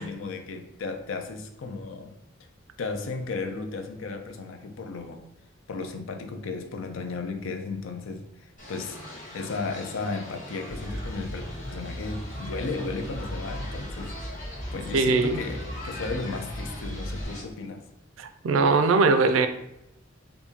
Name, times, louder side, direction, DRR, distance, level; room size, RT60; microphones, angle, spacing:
voice 1, 0.0-2.2 2.8-5.2 5.7-9.0 9.3-14.2 14.7-17.9, left 3 dB, 70° left, 6 dB, 0.4 m, -34 dB
sound 1, 8.6-17.4, left 1 dB, 40° left, 1.1 m, -42 dB
sound 2, 10.7-17.2, equal, 10° right, 1.2 m, -37 dB
voice 2, 14.9-15.4 18.2-19.5, right 4 dB, 80° right, 8 dB, 0.4 m, -21 dB
3.5 x 2.6 x 2.8 m, 0.84 s
head